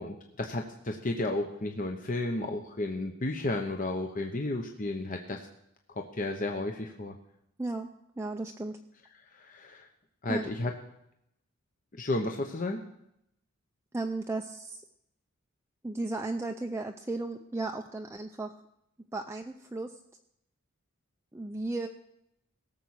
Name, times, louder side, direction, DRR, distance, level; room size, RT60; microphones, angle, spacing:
voice 1, 0.0-5.4 6.0-7.2 9.3-9.9 10.2-10.7 11.9-12.8, left 2 dB, 35° left, 3 dB, 0.9 m, -33 dB
voice 2, 8.2-8.8 10.3-10.5 13.9-14.8 15.8-18.5 19.1-19.9 21.3-21.9, right 2 dB, 10° right, 4 dB, 0.5 m, -35 dB
17.5 x 7.1 x 6.4 m, 0.77 s
head